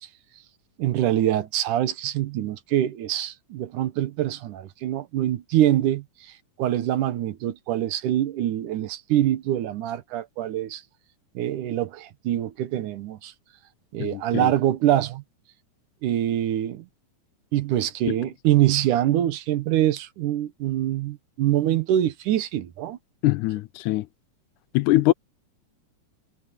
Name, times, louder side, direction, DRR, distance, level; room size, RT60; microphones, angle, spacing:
voice 1, 0.8-10.8 11.3-13.3 13.9-15.2 16.0-16.9 17.5-23.0, right 12 dB, 90° right, 2.7 m, -24 dB
voice 2, 14.0-14.5 18.1-18.2 23.2-24.1 24.7-25.1, left 17 dB, 80° left, 2.0 m, -22 dB
omnidirectional pair, 3.5 m